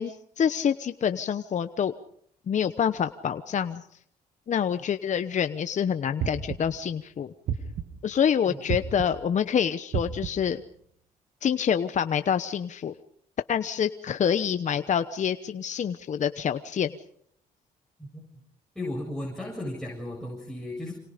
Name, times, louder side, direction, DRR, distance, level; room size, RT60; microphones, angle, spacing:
voice 1, 0.0-1.9 2.5-3.8 4.5-7.3 8.0-10.6 11.4-13.0 13.5-17.0, left 8 dB, 50° left, 10 dB, 1.0 m, -27 dB
sound 1, 6.2-6.8 7.5-8.1 8.7-9.3 9.9-10.6, right 8 dB, 70° right, 1.9 m, -32 dB
voice 2, 18.7-20.9, left 1 dB, 5° left, -2 dB, 7.7 m, -35 dB
28.0 x 27.0 x 5.2 m, 0.67 s
cardioid pair, 80°, 16 cm